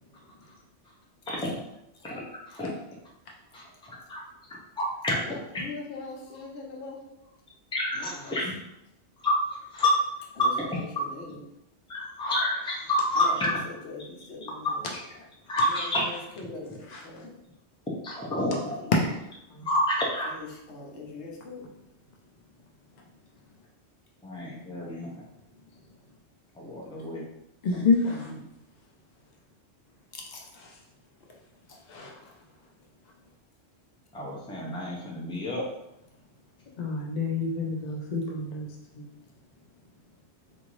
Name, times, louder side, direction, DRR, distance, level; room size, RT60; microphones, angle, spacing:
voice 1, 1.3-1.6 2.0-2.7 3.5-4.2 4.8-5.2 5.5-5.6 7.7-8.5 9.2-9.4 9.7-10.0 10.4-10.5 11.9-13.6 15.5-16.0 18.0-18.8 19.6-20.3 24.2-25.2 26.5-27.2 27.7-28.4 34.1-35.6, left 1 dB, 5° left, -4 dB, 0.6 m, -29 dB
voice 2, 5.2-7.1 7.9-8.4 10.4-11.4 13.2-14.8 15.7-17.3 18.6-18.9 20.3-21.7 30.1-30.5 31.7-32.3, left 3 dB, 75° left, 0 dB, 1.0 m, -42 dB
voice 3, 27.6-28.3 31.9-32.1 36.8-38.7 39.0-39.1, left 4 dB, 50° left, -1 dB, 0.5 m, -28 dB
3.7 x 2.6 x 3.1 m, 0.84 s
omnidirectional pair, 1.1 m